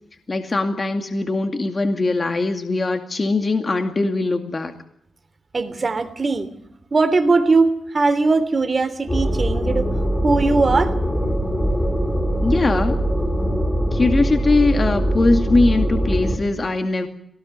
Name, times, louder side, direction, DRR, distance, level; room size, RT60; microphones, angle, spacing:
voice 1, 0.3-4.7 12.4-13.0 13.9-17.1, left 3 dB, 35° left, 5 dB, 2.3 m, -21 dB
voice 2, 5.5-6.5 6.9-9.9 10.2-10.9, right 3 dB, 40° right, 10 dB, 3.2 m, -19 dB
sound 1, 9.1-16.4, equal, 10° left, 6.4 m, -21 dB
22.5 x 19.0 x 9.6 m, 0.75 s
cardioid pair, 85°, 0 cm